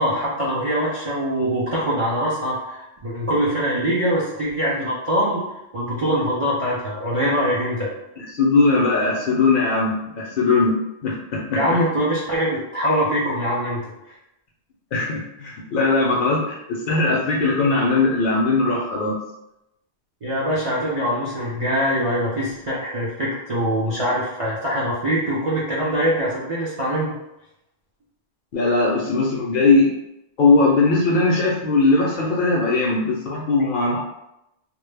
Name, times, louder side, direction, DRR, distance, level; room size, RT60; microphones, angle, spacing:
voice 1, 0.0-5.4 5.7-7.9 11.6-14.1 20.2-27.1, equal, 50° right, -7 dB, 0.4 m, -23 dB
voice 2, 8.2-10.7 11.0-11.6 14.9-19.2 28.5-29.9 30.4-34.0, left 3 dB, 60° left, -3 dB, 0.6 m, -19 dB
2.1 x 2.0 x 3.2 m, 0.87 s
omnidirectional pair, 1.1 m